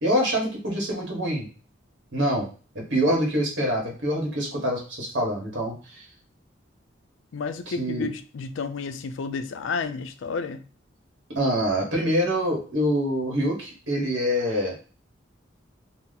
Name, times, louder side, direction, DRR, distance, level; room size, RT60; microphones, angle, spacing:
voice 1, 0.0-1.5 2.1-2.5 2.9-6.0 7.8-8.1 11.3-14.7, equal, 65° right, -1 dB, 1.1 m, -25 dB
voice 2, 7.3-10.6, left 4 dB, 80° left, 10 dB, 0.4 m, -31 dB
2.8 x 2.0 x 3.7 m, 0.38 s
head